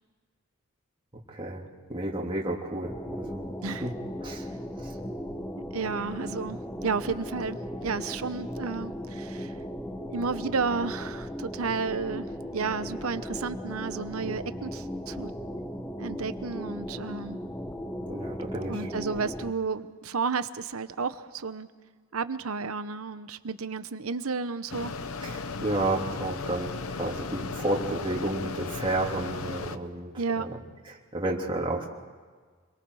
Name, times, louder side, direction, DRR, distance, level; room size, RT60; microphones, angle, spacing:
voice 1, 1.3-3.5 3.8-3.9 4.2-4.5 4.8-4.9 18.0-18.9 25.2-30.5 30.9-31.9, right 2 dB, 25° right, -3 dB, 3.1 m, -31 dB
sound 1, 2.8-19.5, equal, 10° left, 1.1 m, -37 dB
voice 2, 5.7-9.5 10.1-12.2 12.5-15.3 16.0-17.4 18.7-21.7 22.1-24.9 30.2-30.5, right 4 dB, 80° right, 12 dB, 1.0 m, -32 dB
Mechanisms, 24.7-29.8, left 4 dB, 75° left, 0.9 m, -36 dB
29.5 x 22.5 x 4.9 m, 1.5 s
head